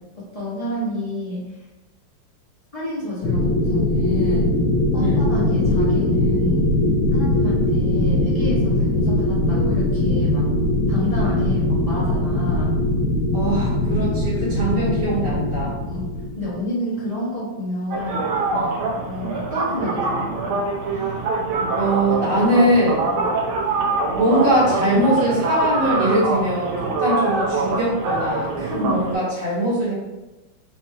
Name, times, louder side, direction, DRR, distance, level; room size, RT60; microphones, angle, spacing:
voice 1, 0.1-1.6 2.7-4.6 4.9-6.7 7.1-10.4 10.9-12.7 15.9-16.0 16.4-18.3 19.0-20.3 23.1-23.5 28.7-29.0, left 1 dB, 25° left, -8 dB, 1.0 m, -30 dB
sound 1, 3.2-16.6, left 1 dB, 90° left, 1.5 m, -20 dB
voice 2, 13.3-15.7 18.6-18.8 21.7-23.1 24.1-29.9, right 1 dB, 60° right, -8 dB, 2.2 m, -21 dB
sound 2, 17.9-29.1, right 3 dB, 90° right, 1.6 m, -24 dB
4.3 x 3.5 x 2.8 m, 1.0 s
omnidirectional pair, 2.2 m